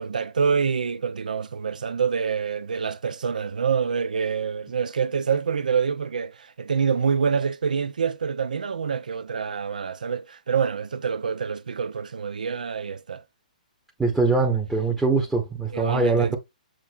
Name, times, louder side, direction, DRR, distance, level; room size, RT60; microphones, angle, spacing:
voice 1, 0.0-13.2 15.7-16.4, right 6 dB, 75° right, 0.6 m, -26 dB
voice 2, 14.0-16.4, right 3 dB, 5° right, 0.9 m, -22 dB
7.4 x 2.5 x 2.4 m
hypercardioid pair, 130°, 4 cm